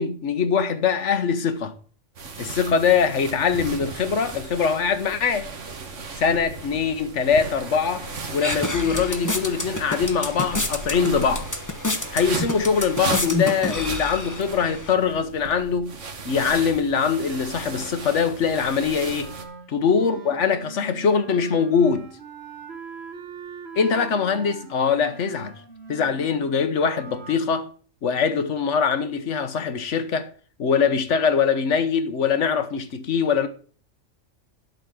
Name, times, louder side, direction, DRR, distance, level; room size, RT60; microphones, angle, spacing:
voice 1, 0.0-1.7 2.4-5.5 6.2-8.1 8.3-11.5 12.1-15.9 16.2-19.3 19.7-22.1 23.7-25.5 25.9-27.7 28.0-30.3 30.6-33.5, left 6 dB, 70° left, 1.4 m, -22 dB
sound 1, 2.1-19.4, right 4 dB, 70° right, 1.6 m, -36 dB
sound 2, 8.0-14.9, left 2 dB, 15° left, 1.0 m, -29 dB
Wind instrument woodwind instrument, 19.1-27.4, right 5 dB, 55° right, 1.8 m, -42 dB
12.0 x 4.2 x 7.7 m
omnidirectional pair, 1.3 m